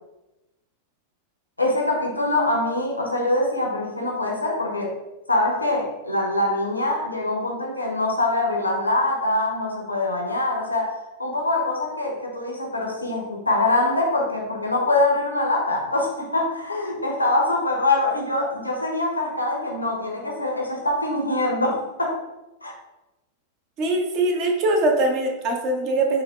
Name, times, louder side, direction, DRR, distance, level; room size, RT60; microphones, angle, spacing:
voice 1, 1.6-5.0 5.3-22.2 22.6-22.7, left 2 dB, 85° left, 0 dB, 0.8 m, -24 dB
voice 2, 23.8-26.2, right 2 dB, 40° right, 1 dB, 0.7 m, -22 dB
3.8 x 2.9 x 3.1 m, 0.99 s
figure-of-eight pair, 90°, 0 cm